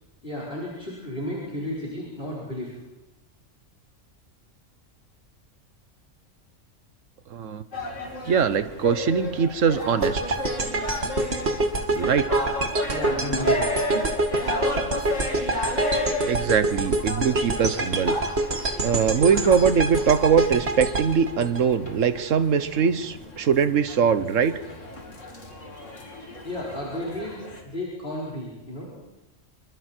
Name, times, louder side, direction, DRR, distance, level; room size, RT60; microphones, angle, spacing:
voice 1, 0.2-2.8 12.9-13.7 26.4-28.9, left 1 dB, 45° left, -6 dB, 5.0 m, -33 dB
voice 2, 7.3-7.6 8.2-10.4 11.9-12.3 16.2-18.2 18.8-24.5, right 6 dB, 75° right, 12 dB, 1.4 m, -22 dB
sound 1, 7.7-27.6, left 2 dB, 70° left, 3.3 m, -33 dB
sound 2, 10.0-22.2, right 2 dB, 55° right, 2.2 m, -26 dB
26.5 x 24.5 x 4.5 m, 0.96 s
omnidirectional pair, 1.3 m